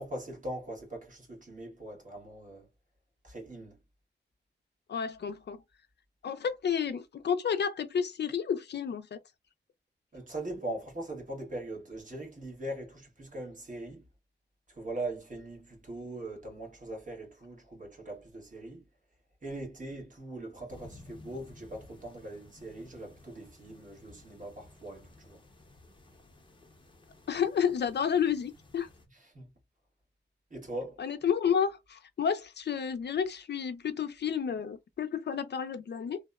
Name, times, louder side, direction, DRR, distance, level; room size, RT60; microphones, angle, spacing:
voice 1, 0.0-2.7 3.2-3.7 10.1-14.0 14.8-18.8 19.4-25.4 29.3-29.5 30.5-31.0, right 1 dB, 40° right, 1.3 m, -41 dB
voice 2, 4.9-5.6 6.2-9.2 27.3-28.9 31.0-36.2, left 7 dB, 60° left, 0.4 m, -31 dB
sound 1, 20.7-29.0, left 2 dB, 25° left, 0.7 m, -55 dB
2.8 x 2.1 x 2.3 m
wide cardioid pair, 115°, 19 cm